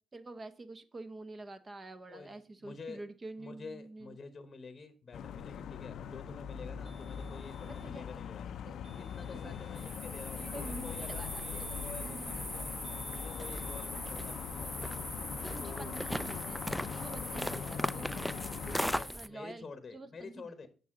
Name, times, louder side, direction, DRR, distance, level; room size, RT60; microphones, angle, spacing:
voice 1, 0.1-4.2 7.6-8.2 8.7-8.8 9.2-9.6 10.3-12.7 15.5-19.7 19.9-20.7, right 2 dB, 30° right, 11 dB, 0.7 m, -48 dB
voice 2, 2.1-3.0 3.4-8.5 8.9-12.7 13.1-14.7 15.6-16.0 18.9-20.7, left 4 dB, 35° left, 9 dB, 0.9 m, -49 dB
sound 1, 5.1-19.0, left 8 dB, 70° left, 0.4 m, -42 dB
sound 2, 6.8-8.0 8.8-10.0 10.8-12.0 12.8-13.9, right 3 dB, 65° right, 2.0 m, -61 dB
sound 3, 9.8-19.3, equal, ahead, 0.3 m, -39 dB
6.9 x 6.2 x 3.6 m, 0.39 s
cardioid pair, 90°, 0 cm